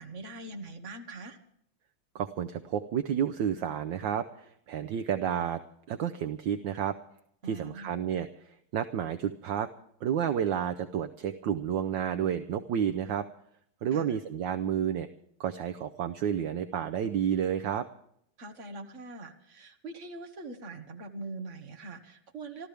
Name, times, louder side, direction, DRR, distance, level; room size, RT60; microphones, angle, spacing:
voice 1, 0.0-1.4 7.4-7.9 13.9-14.2 18.4-22.7, right 2 dB, 35° right, 4 dB, 1.7 m, -42 dB
voice 2, 2.1-5.6 5.9-7.0 7.5-9.7 10.0-13.3 13.8-15.1 15.4-17.9, right 9 dB, 70° right, 8 dB, 1.3 m, -30 dB
28.0 x 13.0 x 3.4 m, 0.70 s
omnidirectional pair, 2.4 m